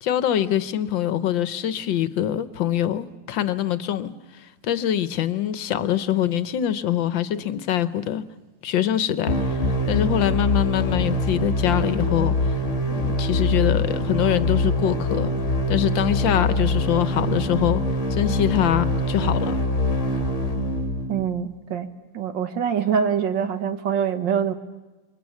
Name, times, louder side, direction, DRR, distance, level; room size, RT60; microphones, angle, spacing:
voice 1, 0.0-8.2 8.6-12.6 12.9-15.3 15.7-17.8 18.1-19.6, left 11 dB, 85° left, 1.7 m, -24 dB
sound 1, 9.3-21.2, left 1 dB, 40° left, 2.3 m, -24 dB
voice 2, 21.1-21.9 22.1-24.5, right 7 dB, 80° right, 2.0 m, -24 dB
27.0 x 23.0 x 7.3 m
omnidirectional pair, 2.0 m